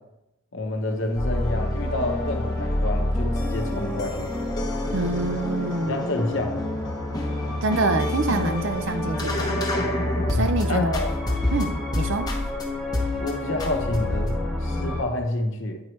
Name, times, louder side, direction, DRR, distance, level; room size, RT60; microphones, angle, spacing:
voice 1, 0.5-4.3 5.8-6.6 10.3-11.1 13.2-15.8, left 1 dB, 60° left, 4 dB, 0.8 m, -28 dB
sound 1, 0.9-10.6 10.9-12.6 12.9-13.3 13.6-14.4, left 1 dB, 20° left, 0.8 m, -31 dB
sound 2, 1.2-15.0, left 1 dB, ahead, 1.1 m, -29 dB
voice 2, 4.9-6.1 7.6-9.7 10.3-10.9 11.5-12.3, right 2 dB, 60° right, 8 dB, 0.5 m, -26 dB
8.7 x 4.5 x 3.1 m, 0.89 s
head